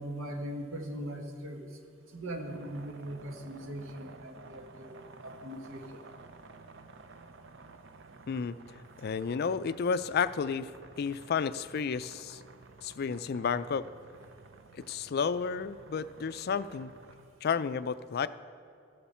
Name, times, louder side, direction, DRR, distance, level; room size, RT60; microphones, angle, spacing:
voice 1, 0.0-1.7 2.1-4.9 5.2-6.0, right 1 dB, 90° right, 3 dB, 1.5 m, -40 dB
sound 1, 2.5-17.3, right 3 dB, 65° right, 0.7 m, -53 dB
voice 2, 9.0-10.7 11.0-12.4 12.8-13.9 14.7-16.9 17.4-18.3, left 6 dB, 50° left, 15 dB, 0.4 m, -31 dB
14.0 x 13.0 x 4.3 m, 2.7 s
head